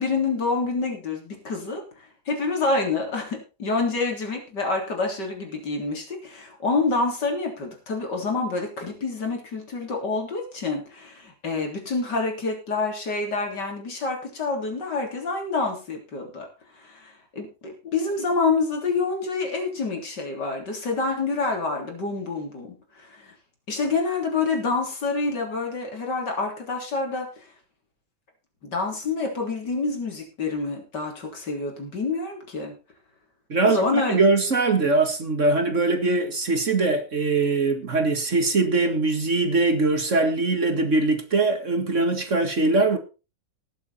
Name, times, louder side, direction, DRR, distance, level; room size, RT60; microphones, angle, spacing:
voice 1, 0.0-16.5 16.7-23.3 23.7-27.5 28.6-32.7 33.6-34.2, left 3 dB, 65° left, 4.0 m, -27 dB
voice 2, 33.5-43.0, right 3 dB, 45° right, 2.0 m, -22 dB
18.5 x 7.5 x 4.2 m
omnidirectional pair, 2.0 m